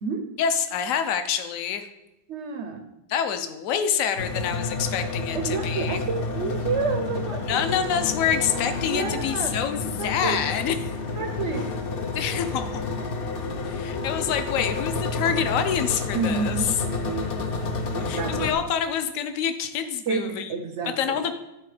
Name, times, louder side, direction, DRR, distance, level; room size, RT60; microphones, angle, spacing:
voice 1, 0.4-1.9 3.1-6.0 7.5-10.8 12.1-12.8 13.6-16.6 18.0-20.5 21.0-21.3, left 8 dB, 65° left, 8 dB, 0.9 m, -26 dB
voice 2, 2.3-2.8 5.3-7.6 8.9-9.5 9.8-10.4 11.2-11.7 16.1-17.3 17.9-18.5 20.1-21.2, right 4 dB, 70° right, 6 dB, 0.6 m, -29 dB
sound 1, 4.2-18.5, left 3 dB, 80° left, 0.5 m, -30 dB
11.5 x 3.8 x 4.9 m, 0.94 s
omnidirectional pair, 2.0 m